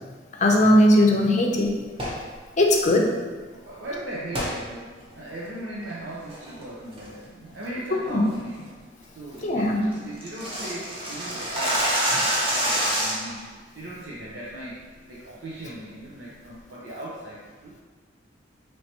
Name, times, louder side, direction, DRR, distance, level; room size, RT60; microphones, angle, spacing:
voice 1, 0.4-1.8 2.6-3.1 8.1-8.2 9.4-9.9, left 1 dB, 40° left, 1 dB, 0.5 m, -19 dB
sound 1, 1.9-2.2 4.3-4.5 5.0-5.1 5.7-5.9 6.3-6.6 7.0-7.3 7.6-7.7 8.1-8.3 8.7-8.8 9.1-9.2 9.4-9.5 9.8-13.4, right 1 dB, 30° right, 0.9 m, -26 dB
voice 2, 3.5-8.8 9.1-17.7, right 1 dB, 85° right, -6 dB, 0.6 m, -38 dB
4.4 x 3.1 x 2.9 m, 1.4 s
head